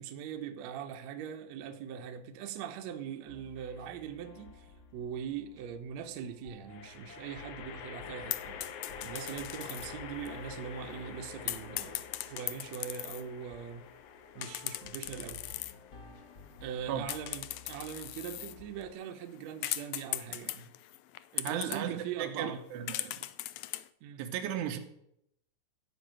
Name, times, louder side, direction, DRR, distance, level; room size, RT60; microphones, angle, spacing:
voice 1, 0.0-4.7 4.9-8.7 9.0-13.8 14.4-15.4 16.6-20.7 21.3-22.6 24.0-24.2, right 8 dB, 70° right, 1.7 m, -41 dB
sound 1, 3.3-18.9, left 3 dB, 55° left, 1.5 m, -54 dB
sound 2, 3.6-4.2 6.7-18.0, left 7 dB, 70° left, 2.8 m, -48 dB
sound 3, 8.3-9.9 10.3-10.4 11.5-13.2 14.4-15.8 16.3-16.8 17.1-21.8 22.5-22.6 22.9-23.9, left 16 dB, 90° left, 1.9 m, -39 dB
voice 2, 21.4-23.3 24.2-24.8, right 9 dB, 90° right, 3.3 m, -35 dB
14.0 x 5.6 x 9.0 m
omnidirectional pair, 4.7 m